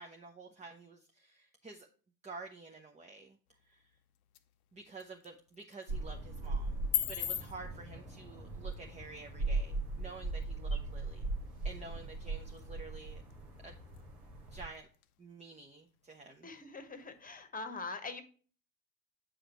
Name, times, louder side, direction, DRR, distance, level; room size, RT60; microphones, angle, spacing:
voice 1, 0.0-1.9 2.2-3.4 3.7-3.9 4.7-6.8 7.1-11.3 11.6-13.2 13.6-13.8 14.5-14.9 15.2-16.5, right 3 dB, 15° right, 3 dB, 0.7 m, -50 dB
sound 1, 3.5-17.5, left 12 dB, 75° left, 0.6 m, -45 dB
sound 2, 5.9-14.7, right 3 dB, 85° right, 1.4 m, -39 dB
voice 2, 16.4-18.2, left 3 dB, 20° left, 9 dB, 1.2 m, -43 dB
7.5 x 5.0 x 2.9 m, 0.40 s
figure-of-eight pair, 55°, 44 cm